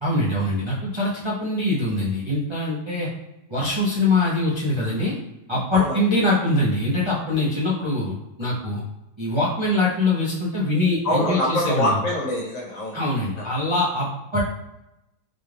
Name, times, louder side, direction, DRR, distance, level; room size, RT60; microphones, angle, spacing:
voice 1, 0.0-3.1 3.5-5.2 5.5-8.8 9.2-11.9 12.9-14.4, left 2 dB, 45° right, -8 dB, 0.3 m, -23 dB
voice 2, 11.0-13.0, left 1 dB, 55° left, -4 dB, 1.4 m, -24 dB
4.1 x 2.3 x 3.3 m, 0.90 s
omnidirectional pair, 1.7 m